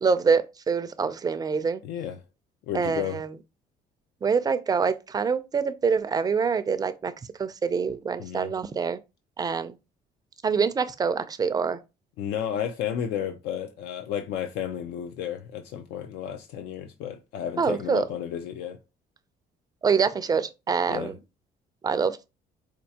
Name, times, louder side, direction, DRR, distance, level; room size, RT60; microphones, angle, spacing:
voice 1, 0.0-1.8 2.7-3.3 4.2-7.1 7.4-9.0 9.4-9.7 10.4-11.8 17.6-18.0 19.8-21.1 21.8-22.3, right 5 dB, 20° right, 0.4 m, -25 dB
voice 2, 1.8-2.2 2.7-3.2 8.2-8.5 12.2-18.8 20.9-21.1, left 9 dB, 80° left, 0.5 m, -32 dB
4.4 x 2.4 x 2.8 m
cardioid pair, 110°, 17 cm